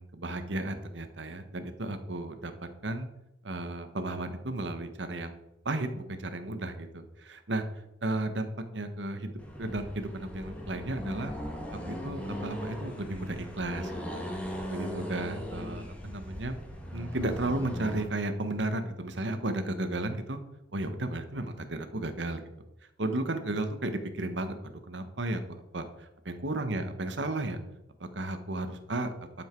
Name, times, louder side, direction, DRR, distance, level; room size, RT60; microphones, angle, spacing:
voice 1, 0.0-2.5 2.8-3.1 3.4-5.4 5.6-7.6 8.0-11.3 11.9-14.2 14.7-16.6 16.9-20.4 20.7-22.5 23.0-25.4 25.7-27.6 28.0-29.1, right 2 dB, 70° right, 8 dB, 1.3 m, -34 dB
Accelerating revving vroom, 9.4-18.1, equal, 5° left, 2.0 m, -39 dB
11.5 x 7.3 x 4.6 m, 0.90 s
head